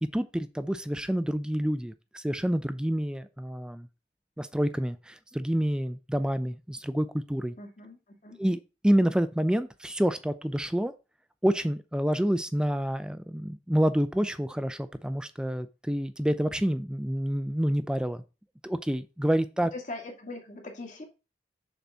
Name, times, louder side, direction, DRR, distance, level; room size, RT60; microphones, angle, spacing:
voice 1, 0.0-3.9 4.4-7.6 8.4-10.9 11.4-18.2 18.6-19.7, equal, 5° right, 0.4 m, -28 dB
voice 2, 7.6-8.4 19.7-21.1, left 2 dB, 45° left, 2.1 m, -41 dB
6.9 x 4.1 x 6.2 m
head